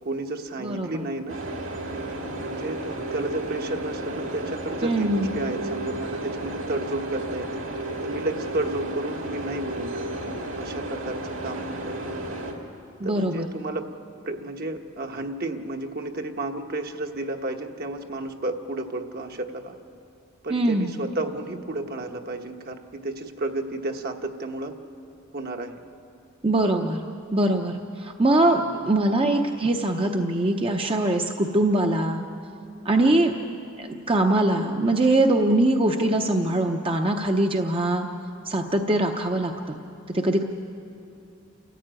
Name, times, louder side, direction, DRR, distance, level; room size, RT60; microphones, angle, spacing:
voice 1, 0.0-1.4 2.4-7.6 8.0-10.1 10.6-12.0 13.0-13.9 14.2-19.8 20.4-24.7 25.3-25.8 28.6-28.8 33.0-33.2, right 2 dB, 50° right, 4 dB, 1.3 m, -32 dB
voice 2, 0.6-1.1 4.8-5.3 13.0-13.5 20.5-20.9 26.4-27.0 27.3-32.2 32.8-33.3 33.8-38.1 38.4-39.8 40.1-40.4, right 1 dB, 30° right, 3 dB, 0.8 m, -22 dB
sound 1, 1.3-12.5, right 1 dB, 70° right, 2.6 m, -33 dB
28.5 x 14.5 x 9.0 m, 2.7 s
head